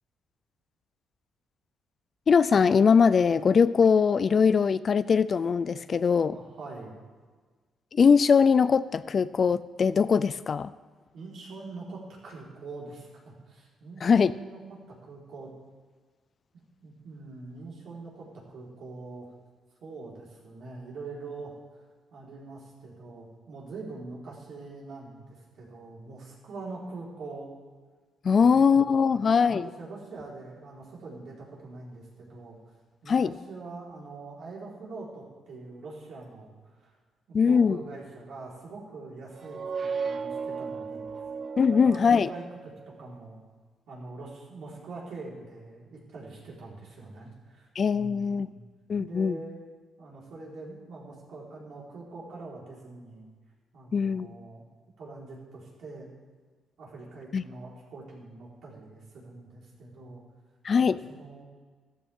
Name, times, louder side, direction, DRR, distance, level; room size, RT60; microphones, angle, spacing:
voice 1, 2.3-6.4 7.9-10.7 14.0-14.3 28.2-29.7 33.1-33.3 37.3-37.8 41.6-42.3 47.8-48.5 48.9-49.4 53.9-54.3 57.3-57.4 60.6-61.0, left 6 dB, 40° left, 16 dB, 0.4 m, -21 dB
voice 2, 6.3-7.0 11.1-14.6 14.9-15.5 16.8-19.3 19.8-21.8 22.1-27.5 28.3-28.7 29.1-32.6 33.0-36.9 37.3-41.1 41.6-43.4 43.9-48.6 49.0-49.6 50.0-53.3 53.7-54.6 55.0-56.1 56.8-60.2 60.8-61.4, right 3 dB, 70° right, -5 dB, 4.4 m, -44 dB
sound 1, 39.3-42.9, right 5 dB, 40° right, 0.7 m, -35 dB
14.0 x 14.0 x 3.7 m, 1.5 s
cardioid pair, 120°, 0 cm